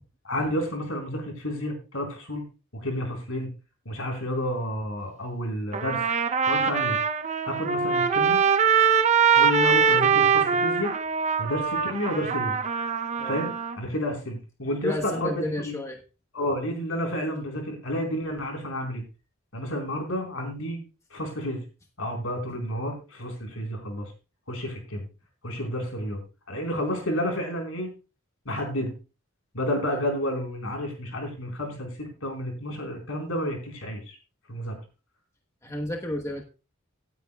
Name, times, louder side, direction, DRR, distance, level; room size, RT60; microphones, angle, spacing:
voice 1, 0.2-2.4 2.7-3.5 3.9-6.0 6.4-7.0 7.4-8.4 9.3-10.9 11.4-12.6 13.2-15.8 16.3-19.0 19.5-20.8 21.1-21.6 22.0-24.1 24.5-25.0 25.4-26.2 26.5-27.9 28.5-29.0 29.5-34.2 34.5-34.7, equal, 85° left, 2 dB, 4.3 m, -30 dB
Trumpet, 5.7-13.8, right 6 dB, 35° right, 0.7 m, -23 dB
voice 2, 14.8-16.0 29.9-30.0 35.6-36.4, left 1 dB, 15° left, 1 dB, 1.2 m, -31 dB
17.5 x 9.3 x 2.3 m, 0.31 s
head